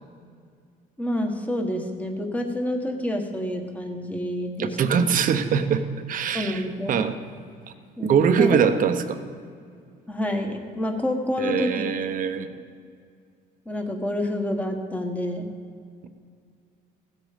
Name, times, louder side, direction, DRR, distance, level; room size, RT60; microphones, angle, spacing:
voice 1, 1.0-5.1 6.3-7.1 8.0-8.6 10.1-11.8 13.6-15.5, left 1 dB, 10° left, 3 dB, 1.6 m, -28 dB
voice 2, 4.6-6.6 6.9-7.1 8.0-9.2 11.4-12.5, right 7 dB, 55° right, 9 dB, 0.9 m, -22 dB
16.0 x 8.2 x 5.2 m, 2.2 s
cardioid pair, 110°, 17 cm